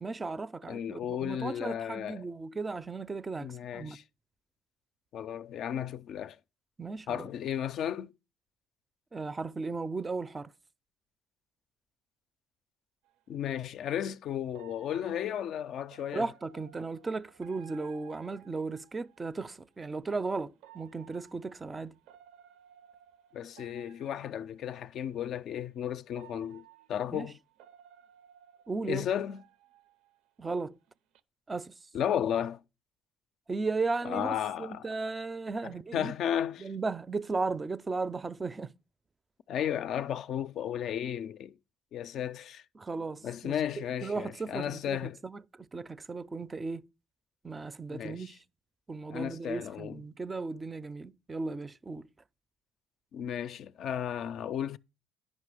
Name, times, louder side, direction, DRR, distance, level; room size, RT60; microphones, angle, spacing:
voice 1, 0.0-4.0 6.8-7.3 9.1-10.5 16.1-21.9 27.1-27.3 28.7-29.1 30.4-30.8 31.5-31.7 33.5-36.1 36.6-38.7 42.8-46.8 47.4-48.4 48.9-52.1, right 3 dB, 25° right, 0.4 m, -36 dB
voice 2, 0.7-2.3 3.4-4.0 5.1-6.4 7.1-8.1 13.3-16.3 23.3-27.4 28.8-29.4 31.9-32.6 34.0-34.9 35.9-36.7 39.5-41.5 41.9-42.6 43.2-45.2 47.9-48.3 49.1-50.0 53.1-54.8, left 9 dB, 65° left, 0.3 m, -34 dB
sound 1, 13.0-13.2 14.5-19.3 20.5-24.8 25.6-25.7 26.2-30.6 30.9-31.2, right 11 dB, 85° right, 0.5 m, -58 dB
9.6 x 5.3 x 4.8 m
supercardioid pair, 85°, 0 cm